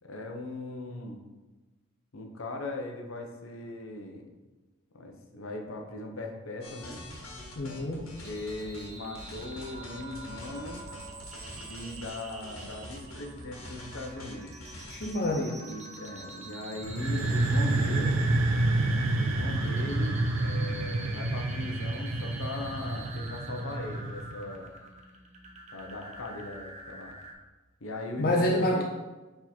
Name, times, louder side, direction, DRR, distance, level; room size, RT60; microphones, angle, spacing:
voice 1, 0.0-1.2 2.1-4.3 4.9-7.0 7.9-10.8 11.5-14.6 15.6-18.3 19.1-24.8 25.7-27.1 27.8-28.8, left 2 dB, 70° left, 3 dB, 0.9 m, -39 dB
sound 1, 6.6-8.9 9.1-15.1, left 1 dB, 85° left, 1.6 m, -45 dB
voice 2, 7.6-8.1 14.9-15.6 28.2-28.8, left 1 dB, 50° left, 0 dB, 0.6 m, -27 dB
sound 2, 8.2-27.3, right 2 dB, 35° right, 0.9 m, -46 dB
sound 3, 16.8-24.5, right 2 dB, 75° right, 0.6 m, -28 dB
7.0 x 3.8 x 4.4 m, 1.2 s
head